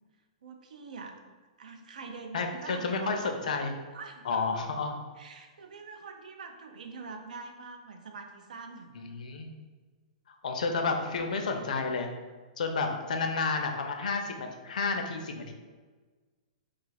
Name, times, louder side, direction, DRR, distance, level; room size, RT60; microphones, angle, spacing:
voice 1, 0.4-1.2 1.6-3.4 3.9-4.5 5.2-8.9 12.9-13.3, right 4 dB, 90° right, 5 dB, 0.4 m, -44 dB
voice 2, 2.3-3.7 4.2-5.0 9.0-9.5 10.3-12.1 12.6-15.5, left 4 dB, 75° left, 4 dB, 0.5 m, -31 dB
2.4 x 2.3 x 3.9 m, 1.4 s
hypercardioid pair, 170°, 4 cm